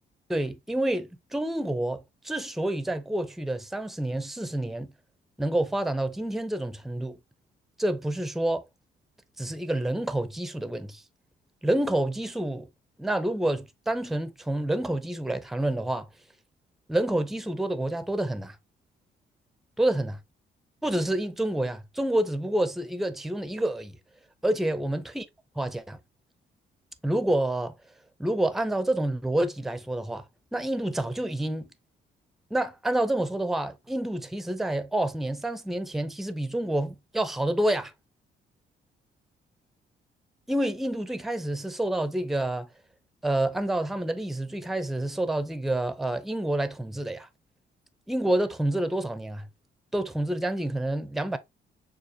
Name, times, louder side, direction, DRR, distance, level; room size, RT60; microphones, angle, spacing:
voice 1, 0.3-4.9 5.4-7.2 7.8-8.6 9.4-11.0 11.6-12.7 13.0-16.1 16.9-18.6 19.8-20.1 20.8-24.0 24.4-25.3 25.6-26.0 27.0-27.7 28.2-30.2 30.5-31.7 32.5-37.9 40.5-42.7 43.2-47.3 48.1-49.5 49.9-51.4, right 1 dB, ahead, 0.5 m, -28 dB
6.5 x 2.4 x 2.8 m
cardioid pair, 90°, 20 cm